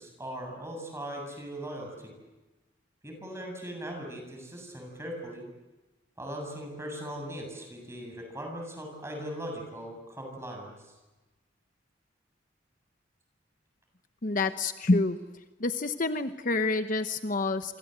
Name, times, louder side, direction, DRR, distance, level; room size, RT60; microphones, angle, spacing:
voice 1, 0.0-2.1 3.0-5.4 6.2-10.9, equal, 15° right, 2 dB, 7.7 m, -39 dB
voice 2, 14.2-15.2 15.6-17.8, left 3 dB, 45° left, 9 dB, 1.0 m, -27 dB
28.5 x 25.0 x 8.0 m, 1.1 s
head